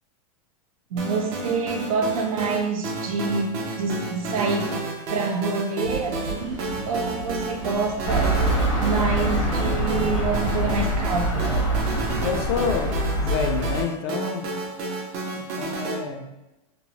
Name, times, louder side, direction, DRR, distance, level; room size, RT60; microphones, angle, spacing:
voice 1, 0.9-4.7 5.1-8.4 8.8-11.5, right 4 dB, 85° right, 3 dB, 0.6 m, -27 dB
sound 1, 1.0-16.0, right 2 dB, 30° right, 0.4 m, -31 dB
sound 2, 5.8-12.2, right 2 dB, 65° right, 0.9 m, -37 dB
sound 3, 8.0-13.8, right 1 dB, 85° left, 0.9 m, -24 dB
voice 2, 12.2-14.5 15.3-16.3, left 5 dB, 45° left, 4 dB, 0.4 m, -28 dB
3.0 x 2.0 x 2.7 m, 0.97 s
supercardioid pair, 170°, 18 cm